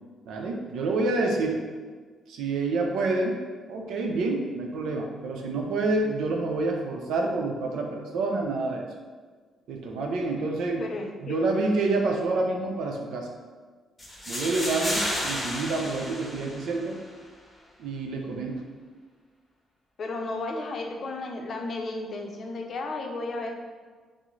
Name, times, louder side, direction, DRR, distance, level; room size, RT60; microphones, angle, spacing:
voice 1, 0.3-1.6 2.3-3.4 3.7-8.9 9.7-10.9 11.2-13.3 14.3-17.0 17.8-18.6, right 3 dB, 85° right, 1 dB, 0.6 m, -28 dB
voice 2, 10.8-11.4 20.0-23.5, left 2 dB, 45° left, 2 dB, 0.5 m, -33 dB
sound 1, 14.0-17.0, left 1 dB, 15° left, 0.8 m, -32 dB
5.9 x 2.0 x 3.2 m, 1.5 s
cardioid pair, 125°, 0 cm